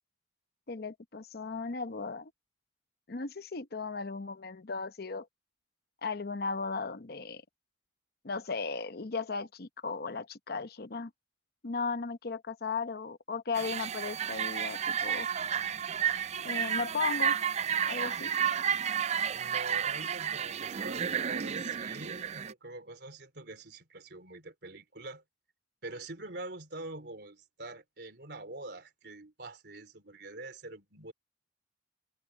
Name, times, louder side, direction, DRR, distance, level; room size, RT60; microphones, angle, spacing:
voice 1, 0.7-2.3 3.1-5.3 6.0-7.4 8.2-11.1 11.6-15.3 16.4-17.4 17.9-18.3, left 4 dB, 60° left, 0.8 m, -36 dB
sound 1, 13.5-22.5, right 8 dB, 35° right, 0.4 m, -32 dB
voice 2, 19.3-25.2 25.8-31.1, right 2 dB, 65° right, 3.9 m, -45 dB
head